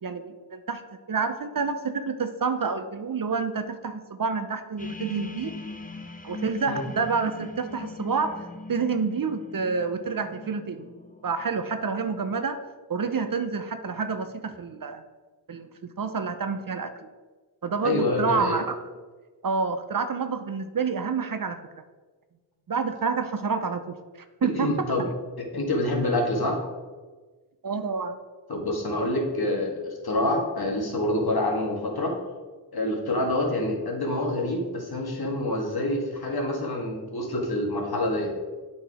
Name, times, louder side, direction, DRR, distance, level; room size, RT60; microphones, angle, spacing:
voice 1, 0.0-0.8 1.1-5.5 6.2-10.9 11.2-12.6 12.9-15.0 15.5-16.9 17.6-18.8 19.4-21.6 22.7-24.0 24.4-24.7 25.0-25.1 27.6-28.2, right 5 dB, 50° right, 9 dB, 0.7 m, -28 dB
sound 1, 4.8-11.6, left 2 dB, 20° left, 0.9 m, -40 dB
voice 2, 17.8-18.6 24.5-25.1 25.4-26.6 28.5-32.1 32.7-38.3, left 1 dB, 55° left, -1 dB, 2.1 m, -27 dB
8.3 x 4.6 x 4.9 m, 1.3 s
cardioid pair, 50°, 45 cm